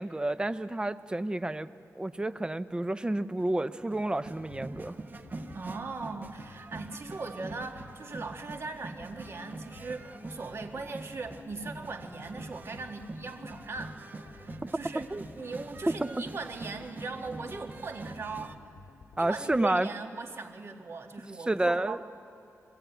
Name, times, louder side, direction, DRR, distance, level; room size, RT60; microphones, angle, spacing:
voice 1, 0.0-1.7 2.0-5.0 14.9-15.2 19.2-19.9 21.5-22.0, right 1 dB, 15° right, 12 dB, 0.6 m, -30 dB
sound 1, 3.4-18.5, right 2 dB, 30° right, 0.9 m, -45 dB
sound 2, 4.2-19.6, left 4 dB, 80° left, 0.9 m, -53 dB
voice 2, 5.5-15.0 15.4-18.6 19.2-22.1, right 3 dB, 50° right, 3 dB, 1.6 m, -39 dB
23.0 x 15.5 x 9.1 m, 3.0 s
wide cardioid pair, 145°, 6 cm